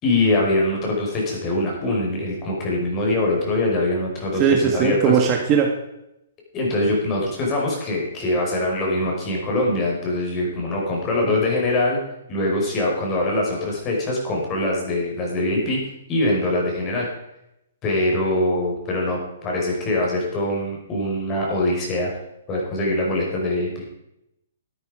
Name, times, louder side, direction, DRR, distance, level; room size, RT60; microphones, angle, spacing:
voice 1, 0.0-5.2 6.5-12.0 12.3-15.8 16.1-17.1 17.8-22.1 22.5-23.9, left 1 dB, 25° left, -2 dB, 5.1 m, -23 dB
voice 2, 4.4-5.7 11.2-11.4, right 7 dB, 30° right, 3 dB, 1.6 m, -19 dB
13.0 x 9.4 x 5.0 m, 0.84 s
hypercardioid pair, 145°, 0 cm